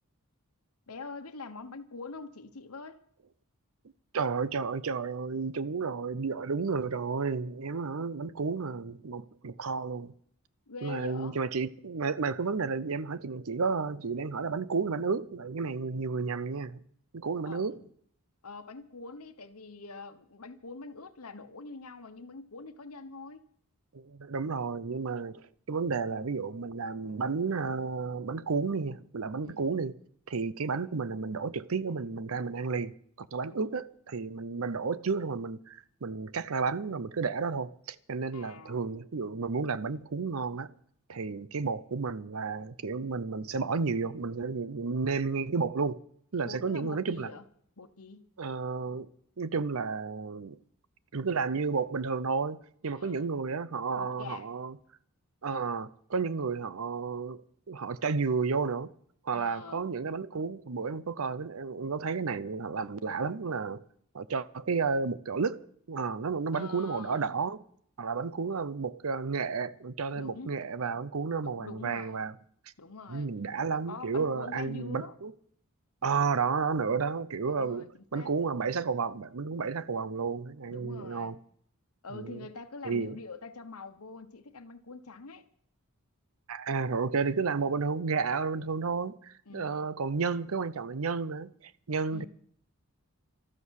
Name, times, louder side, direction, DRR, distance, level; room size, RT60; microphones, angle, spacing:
voice 1, 0.9-3.0 10.7-11.4 17.4-17.9 18.4-23.4 29.4-29.7 33.5-33.8 38.3-39.1 46.4-47.4 47.8-48.2 52.9-53.3 53.9-54.6 59.3-59.8 66.5-67.3 70.1-70.6 71.4-72.2 72.8-73.3 73.9-75.1 76.0-76.5 77.4-78.3 80.7-81.3 82.0-85.4 89.5-89.9 92.1-92.3, left 4 dB, 80° left, 1.2 m, -45 dB
voice 2, 4.1-10.1 10.8-16.8 17.1-17.8 23.9-30.0 30.3-40.7 41.1-46.0 46.3-47.3 48.4-49.1 49.4-50.6 51.1-54.8 55.4-57.4 57.7-58.9 59.2-63.8 64.1-67.6 68.0-72.3 73.1-75.3 76.0-77.9 78.1-81.4 82.1-82.5 82.8-83.2 86.5-92.3, right 4 dB, 70° right, 0.6 m, -32 dB
13.0 x 12.5 x 6.4 m
head